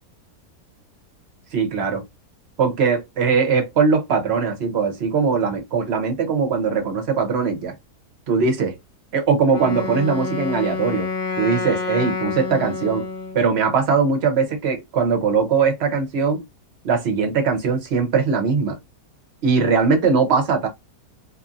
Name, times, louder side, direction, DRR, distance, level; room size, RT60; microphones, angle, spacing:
voice 1, 1.5-2.0 2.6-7.7 8.3-8.8 9.1-11.1 11.4-13.1 13.3-16.4 16.8-18.7 19.4-20.7, right 5 dB, 50° right, 0.9 m, -20 dB
Wind instrument woodwind instrument, 9.5-13.5, left 4 dB, 60° left, 0.5 m, -28 dB
3.0 x 2.6 x 2.5 m
omnidirectional pair, 1.8 m